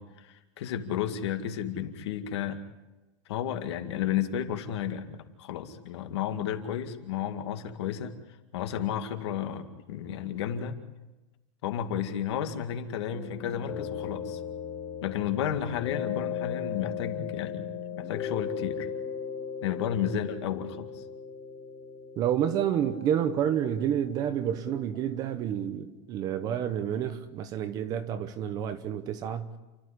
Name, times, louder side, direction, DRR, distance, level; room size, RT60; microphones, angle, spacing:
voice 1, 0.0-2.6 3.3-8.1 8.5-10.8 11.6-14.4 15.0-17.7 18.0-18.9 19.6-21.0, left 9 dB, 60° left, 2.2 m, -32 dB
sound 1, 13.1-25.5, left 7 dB, 25° left, 2.3 m, -37 dB
voice 2, 22.2-29.5, right 9 dB, 25° right, 0.9 m, -29 dB
29.0 x 12.5 x 10.0 m
supercardioid pair, 175°, 16 cm